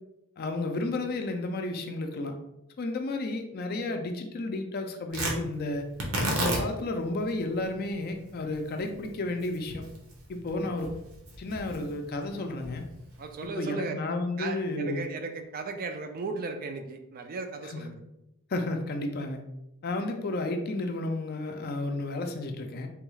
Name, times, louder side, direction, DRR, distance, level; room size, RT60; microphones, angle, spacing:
voice 1, 0.4-2.3 2.8-5.9 6.4-9.9 10.3-10.9 11.4-12.8 13.6-15.1 17.6-17.9 18.5-19.4 19.8-22.9, left 2 dB, 45° left, 5 dB, 0.4 m, -32 dB
Tearing, 5.1-13.5, right 1 dB, 65° right, 0.8 m, -35 dB
voice 2, 13.2-14.0 14.4-18.0, right 4 dB, 40° right, 5 dB, 0.3 m, -36 dB
3.4 x 2.3 x 3.1 m, 0.88 s
head